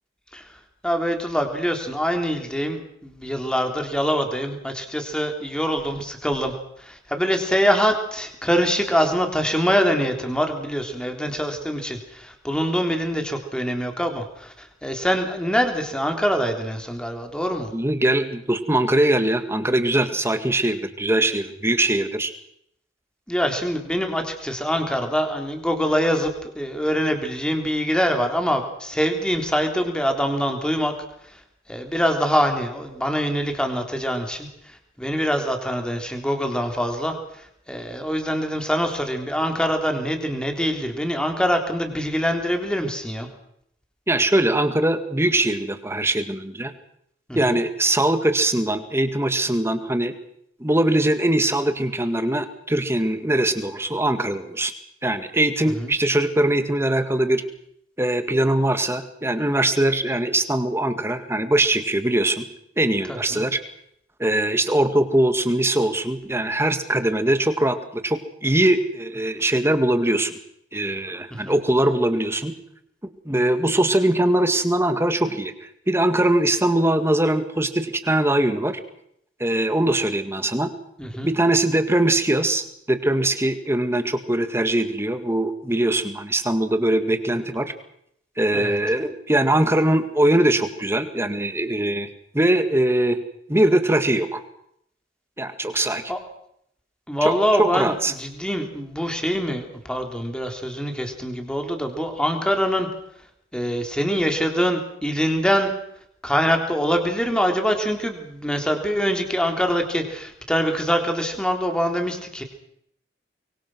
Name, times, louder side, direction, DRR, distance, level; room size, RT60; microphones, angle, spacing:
voice 1, 0.8-6.5 6.8-17.7 23.3-30.9 31.7-34.5 35.0-37.2 37.7-43.3 47.3-47.6 55.8-55.9 63.1-63.4 71.4-71.5 81.0-81.3 88.5-88.8 96.1-96.2 97.1-102.9 103.5-105.7 106.2-112.4, equal, 5° left, 4 dB, 3.5 m, -24 dB
voice 2, 17.7-22.3 44.1-46.7 47.3-50.1 50.6-54.7 55.0-57.4 58.0-62.5 62.8-63.6 64.2-70.4 70.7-72.5 73.3-78.8 79.4-80.7 81.2-87.7 88.4-92.1 92.3-93.2 93.5-94.4 95.4-96.0 97.2-98.1, right 1 dB, 15° right, 9 dB, 2.0 m, -21 dB
24.5 x 23.0 x 6.2 m, 0.71 s
head